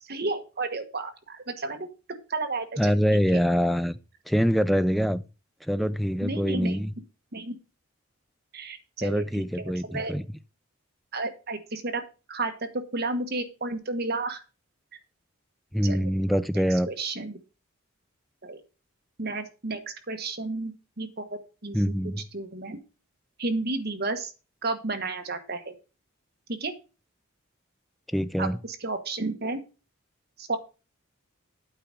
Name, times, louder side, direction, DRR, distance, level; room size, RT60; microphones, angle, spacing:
voice 1, 0.0-1.9 2.3-2.9 3.3-3.4 6.2-6.9 7.3-7.5 8.5-10.1 11.1-12.0 12.3-14.4 15.8-16.1 16.9-17.4 18.4-18.6 19.2-21.8 22.3-22.8 23.4-24.3 24.6-25.7 26.5-26.7 28.4-29.6 30.4-30.6, right 3 dB, 50° right, 1.4 m, -32 dB
voice 2, 2.8-4.0 4.3-5.2 5.7-6.9 9.0-10.2 15.7-16.9 21.7-22.2 28.1-28.6, equal, ahead, 0.4 m, -24 dB
8.9 x 4.9 x 6.8 m
head